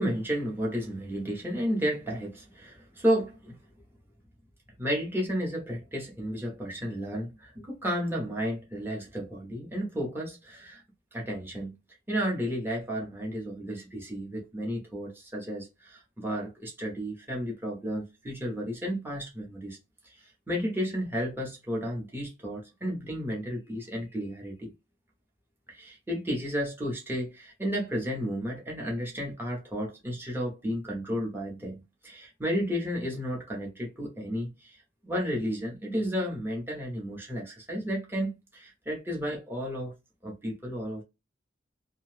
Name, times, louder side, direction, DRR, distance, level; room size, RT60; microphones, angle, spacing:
voice 1, 0.0-3.6 4.8-10.8 11.1-11.7 12.1-19.8 20.1-24.7 25.7-39.9 40.2-41.0, equal, 10° right, 0.8 m, -32 dB
2.6 x 2.2 x 3.2 m
head